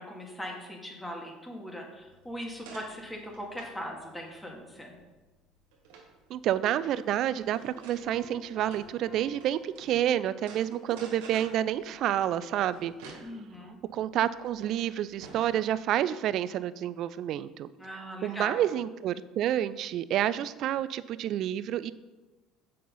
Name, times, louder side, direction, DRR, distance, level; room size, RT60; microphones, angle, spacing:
voice 1, 0.0-5.0 13.2-13.8 17.8-18.6, equal, 10° left, 0 dB, 2.1 m, -40 dB
sound 1, 2.0-10.0 10.4-15.6, right 4 dB, 80° right, 1.7 m, -51 dB
voice 2, 6.3-12.9 13.9-21.9, right 11 dB, 60° right, 16 dB, 0.4 m, -29 dB
Piano, 8.1-10.6, left 4 dB, 30° left, 1.6 m, -53 dB
7.6 x 5.7 x 5.4 m, 1.2 s
supercardioid pair, 80°, 0 cm